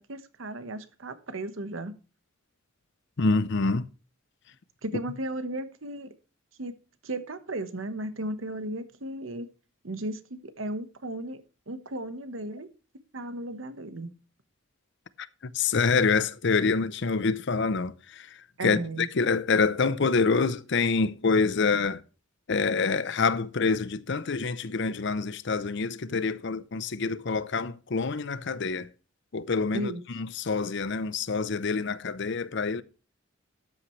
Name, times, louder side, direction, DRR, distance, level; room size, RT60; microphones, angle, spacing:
voice 1, 0.0-1.9 4.8-6.1 6.6-6.7 7.0-9.5 9.8-12.7 13.1-14.1 18.6-19.1 29.7-30.0, right 1 dB, 75° right, 1.2 m, -35 dB
voice 2, 3.2-3.9 15.5-18.3 18.6-22.0 22.5-28.9 29.3-32.8, left 4 dB, 60° left, 0.7 m, -26 dB
12.5 x 8.7 x 3.2 m
head